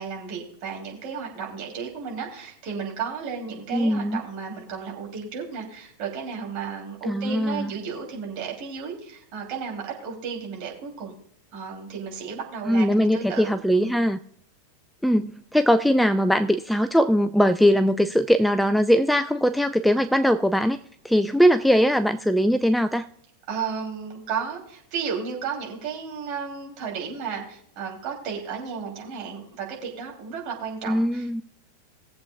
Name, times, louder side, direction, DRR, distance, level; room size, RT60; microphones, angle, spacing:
voice 1, 0.0-11.1 11.5-14.0 23.5-31.4, right 6 dB, 40° right, 0 dB, 3.0 m, -33 dB
voice 2, 3.7-4.2 7.1-7.7 12.7-14.2 15.0-20.8 21.0-23.1 30.9-31.4, equal, ahead, 11 dB, 0.4 m, -21 dB
20.0 x 7.6 x 2.3 m, 0.66 s
figure-of-eight pair, 90°, 0 cm